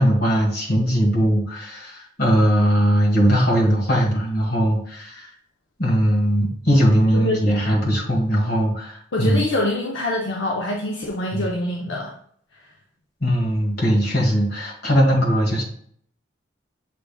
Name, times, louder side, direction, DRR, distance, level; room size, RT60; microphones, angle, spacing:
voice 1, 0.0-5.3 5.8-9.4 11.3-11.5 13.2-15.6, equal, 55° left, -1 dB, 1.5 m, -19 dB
voice 2, 9.1-12.1, left 1 dB, 75° left, -1 dB, 0.6 m, -25 dB
6.7 x 3.4 x 2.3 m, 0.62 s
head